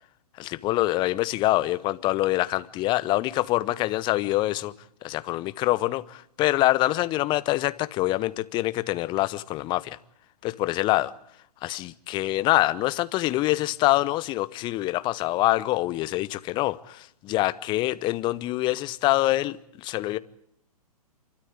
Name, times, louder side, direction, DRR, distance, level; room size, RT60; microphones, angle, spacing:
voice 1, 0.4-4.7 5.0-10.0 10.4-11.1 11.6-20.2, left 17 dB, 25° left, 0.9 m, -25 dB
29.0 x 13.0 x 9.5 m
figure-of-eight pair, 115°, 19 cm